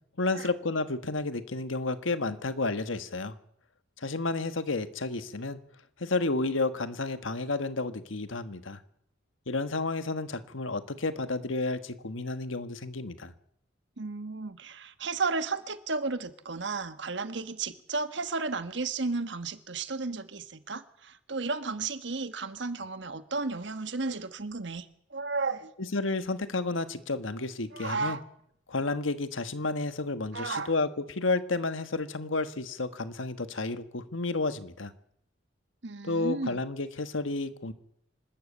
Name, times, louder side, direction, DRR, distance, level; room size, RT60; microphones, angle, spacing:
voice 1, 0.2-3.3 4.0-5.6 6.0-8.8 9.5-13.3 25.9-28.2 28.7-34.9 36.0-37.7, left 3 dB, 90° left, 11 dB, 1.4 m, -31 dB
voice 2, 14.0-25.7 27.7-28.2 30.3-30.7 35.8-36.6, right 3 dB, 65° right, 11 dB, 1.4 m, -33 dB
26.5 x 13.0 x 8.4 m, 0.74 s
head